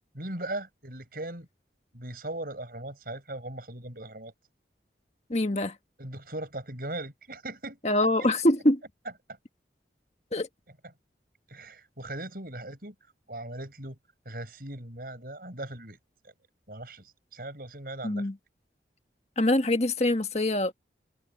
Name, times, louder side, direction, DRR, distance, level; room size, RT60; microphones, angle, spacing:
voice 1, 0.2-1.5 1.9-4.3 6.0-7.8 8.2-8.3 11.5-12.9 13.3-14.0 14.2-16.0 16.2-16.3 16.7-18.3, right 1 dB, 55° right, 7.9 m, -39 dB
voice 2, 5.3-5.7 7.8-8.8 10.3-10.5 18.0-18.3 19.4-20.7, left 1 dB, 40° left, 1.5 m, -24 dB
head